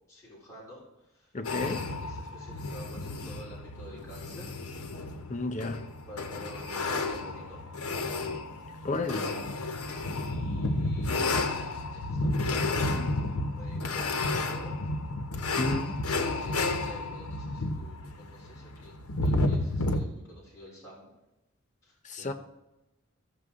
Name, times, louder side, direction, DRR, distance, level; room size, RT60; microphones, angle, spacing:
voice 1, 0.1-1.3 1.6-4.5 5.3-5.4 6.1-7.6 10.1-14.8 16.3-21.1 21.8-22.3, equal, 15° left, 4.3 m, -49 dB
voice 2, 1.3-1.8 5.3-5.8 8.8-9.3 12.9-13.1 15.6-15.9 22.0-22.3, left 2 dB, 35° left, 0.7 m, -32 dB
sound 1, 1.4-20.0, left 2 dB, 85° left, 1.0 m, -31 dB
15.5 x 6.8 x 3.7 m
head